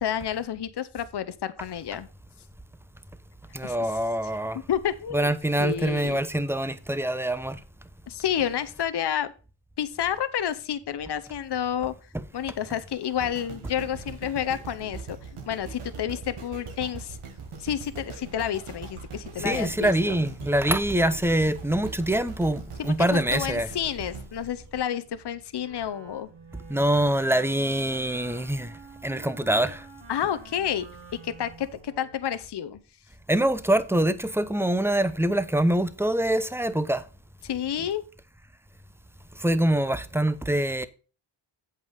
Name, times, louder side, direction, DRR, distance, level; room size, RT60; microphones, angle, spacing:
voice 1, 0.0-2.1 3.6-3.8 4.7-5.3 5.6-6.2 8.1-9.3 9.8-11.9 12.3-17.2 17.6-20.2 22.8-26.3 30.1-30.9 31.2-32.8 37.4-38.0, left 9 dB, 55° left, 0.9 m, -30 dB
voice 2, 3.5-4.6 5.1-7.6 12.1-12.2 12.7-12.8 19.4-23.7 26.7-29.9 30.2-30.3 33.3-37.0 37.8-37.9 39.3-40.9, right 1 dB, 5° right, 0.9 m, -25 dB
sound 1, 13.2-25.4 25.9-26.0, right 5 dB, 85° right, 1.9 m, -41 dB
Wind instrument woodwind instrument, 25.6-32.3, right 4 dB, 60° right, 2.2 m, -48 dB
8.1 x 5.4 x 5.5 m
cardioid pair, 60°, 49 cm